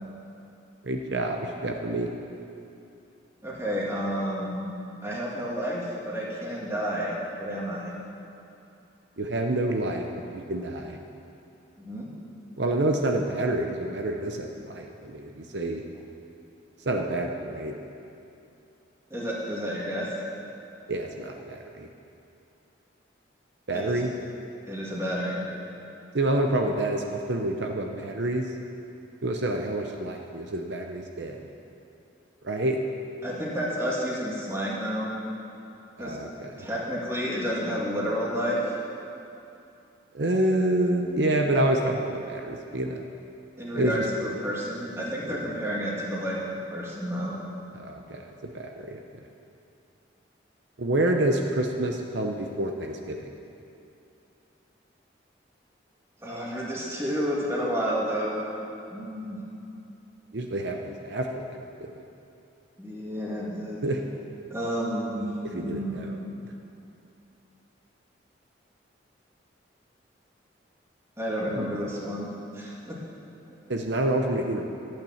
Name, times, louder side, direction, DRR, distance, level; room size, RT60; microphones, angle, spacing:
voice 1, 0.8-2.1 9.2-10.0 10.3-11.0 12.6-15.8 16.9-17.7 20.9-21.9 23.7-24.1 26.1-28.5 29.2-31.5 32.4-32.8 36.0-36.7 40.1-43.0 43.7-44.3 47.7-49.0 50.8-53.3 60.3-61.4 61.8-61.9 63.8-64.0 65.5-66.1 71.5-71.8 73.7-74.7, right 1 dB, 70° right, 3 dB, 0.8 m, -28 dB
voice 2, 3.4-4.6 5.0-8.0 11.8-12.1 19.1-20.1 23.7-24.0 24.7-25.4 33.2-35.1 36.0-36.2 36.6-38.7 43.6-47.4 56.2-58.4 58.9-59.4 62.8-63.8 64.5-66.0 71.2-73.0, equal, 15° right, -5 dB, 1.9 m, -30 dB
12.0 x 9.0 x 7.2 m, 2.8 s
head